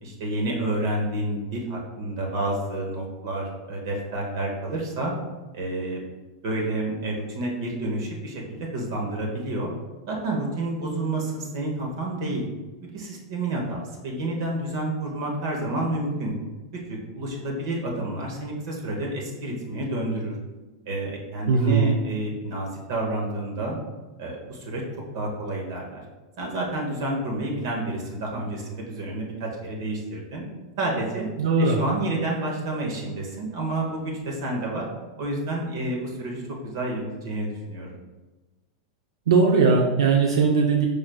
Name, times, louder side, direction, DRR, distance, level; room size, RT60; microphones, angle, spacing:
voice 1, 0.0-5.1 5.5-6.0 6.4-9.7 10.1-12.5 12.8-16.3 16.9-20.4 20.9-23.8 24.2-24.8 25.1-26.0 26.4-30.4 30.8-31.3 31.6-34.9 35.2-38.0, right 1 dB, 70° right, -1 dB, 0.9 m, -29 dB
voice 2, 21.5-22.0 31.4-31.8 39.3-40.9, right 5 dB, 85° right, 1 dB, 0.4 m, -19 dB
4.8 x 3.2 x 2.2 m, 1.2 s
supercardioid pair, 130°, 2 cm